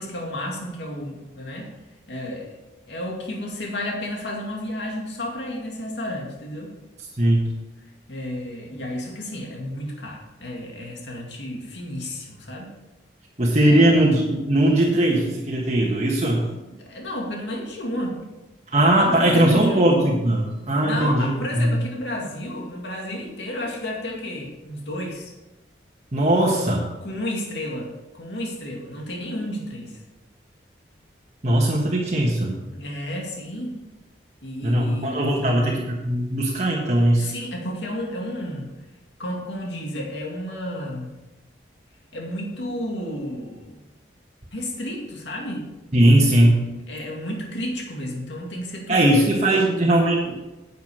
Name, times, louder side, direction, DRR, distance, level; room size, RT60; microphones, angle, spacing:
voice 1, 0.0-1.7 2.1-2.6 2.9-6.7 8.1-12.7 13.7-13.9 16.7-18.2 18.9-19.9 20.8-25.3 26.5-26.7 27.0-30.0 32.6-33.8 34.4-35.6 37.2-38.7 39.2-41.2 42.1-43.8 44.5-45.7 46.9-49.3 49.5-49.9, left 1 dB, 75° left, -1 dB, 2.2 m, -32 dB
voice 2, 7.2-7.5 13.4-16.4 18.7-21.8 26.1-26.8 31.4-32.6 34.6-37.3 45.9-46.6 48.9-50.4, right 1 dB, 35° right, -3 dB, 1.4 m, -19 dB
10.5 x 8.4 x 5.0 m, 1.1 s
head